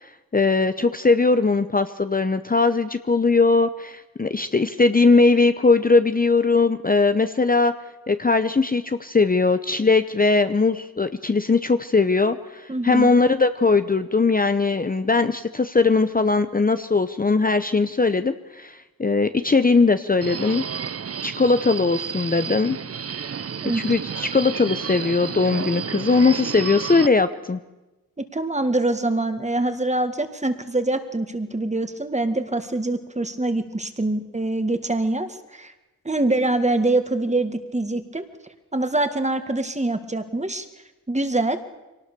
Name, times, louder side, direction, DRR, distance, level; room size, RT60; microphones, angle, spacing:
voice 1, 0.0-7.7 8.1-20.6 21.2-22.8 23.7-27.6, left 3 dB, 25° left, 10 dB, 0.8 m, -20 dB
voice 2, 12.7-13.1 23.6-23.8 28.2-35.7 36.1-38.2 38.7-40.7 41.1-41.6, right 2 dB, 20° right, 9 dB, 2.0 m, -24 dB
Subway metro underground, 20.2-27.1, right 7 dB, 45° right, 0.7 m, -31 dB
23.5 x 18.5 x 6.9 m, 1.1 s
cardioid pair, 75°, 35 cm